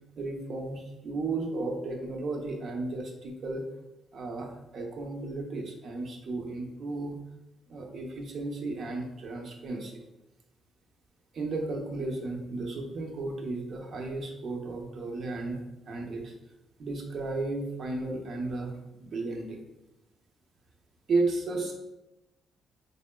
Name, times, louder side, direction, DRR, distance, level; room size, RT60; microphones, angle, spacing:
voice 1, 0.2-3.7 4.1-7.2 7.7-10.0 11.3-16.3 16.8-19.6 21.1-21.7, right 3 dB, 60° right, 2 dB, 0.7 m, -34 dB
4.3 x 3.4 x 2.2 m, 0.93 s
cardioid pair, 90°, 0 cm